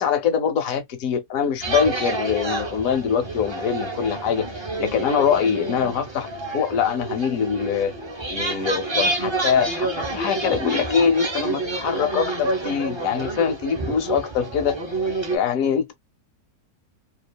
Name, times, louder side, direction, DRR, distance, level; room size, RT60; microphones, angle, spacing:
voice 1, 0.0-4.5 4.8-6.3 6.5-7.9 8.3-14.8 15.3-15.9, left 7 dB, 65° left, 1.0 m, -23 dB
sound 1, 1.6-15.4, right 2 dB, 35° right, 0.4 m, -28 dB
2.9 x 2.4 x 2.2 m
omnidirectional pair, 1.7 m